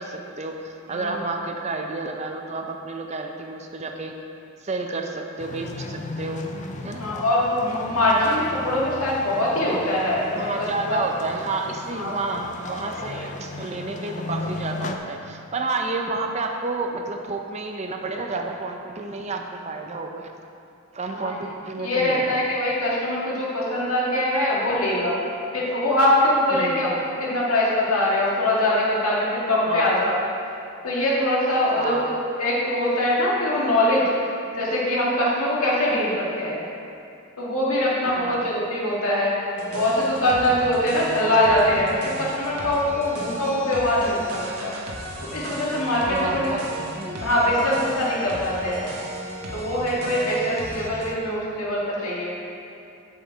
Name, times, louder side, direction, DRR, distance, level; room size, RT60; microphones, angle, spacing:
voice 1, 0.0-4.2 4.6-6.5 6.8-7.0 10.3-20.3 20.9-22.4 26.5-26.9 29.7-30.0 31.8-32.1 38.0-38.4 46.1-46.6 46.9-47.3 50.1-50.3, right 3 dB, 30° right, 3 dB, 0.5 m, -30 dB
sound 1, 5.4-15.0, left 3 dB, 35° left, 0.4 m, -36 dB
voice 2, 7.0-11.0 11.9-12.1 21.2-21.3 21.8-25.2 25.5-26.9 27.2-30.2 30.8-32.0 32.4-36.6 37.4-39.3 39.7-44.7 45.2-46.5 47.2-48.8 49.5-52.3, left 1 dB, 80° left, -5 dB, 2.0 m, -23 dB
sound 2, 39.6-51.1, right 1 dB, 90° right, 1.3 m, -35 dB
7.5 x 7.4 x 4.6 m, 2.6 s
head